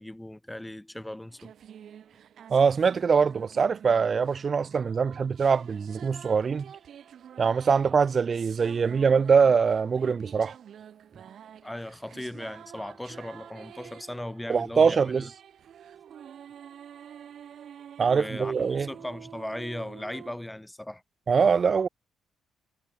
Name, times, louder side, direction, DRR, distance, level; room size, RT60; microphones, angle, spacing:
voice 1, 0.0-1.5 11.6-15.3 18.1-21.0, left 1 dB, 5° left, 0.7 m, -38 dB
sound 1, 1.3-20.4, right 9 dB, 60° right, 4.9 m, -48 dB
voice 2, 2.5-6.7 7.4-10.6 14.5-15.3 18.0-18.9 21.3-21.9, right 5 dB, 40° right, 0.3 m, -23 dB
cardioid pair, 90°, 0 cm